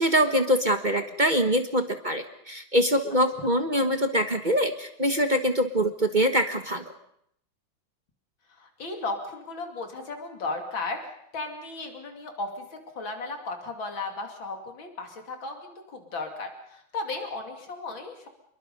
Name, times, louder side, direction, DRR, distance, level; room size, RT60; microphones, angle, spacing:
voice 1, 0.0-6.8, equal, 30° right, 7 dB, 1.2 m, -24 dB
voice 2, 8.5-11.0 11.3-18.3, left 3 dB, 70° left, 4 dB, 3.3 m, -35 dB
27.0 x 22.5 x 5.4 m, 0.71 s
omnidirectional pair, 2.2 m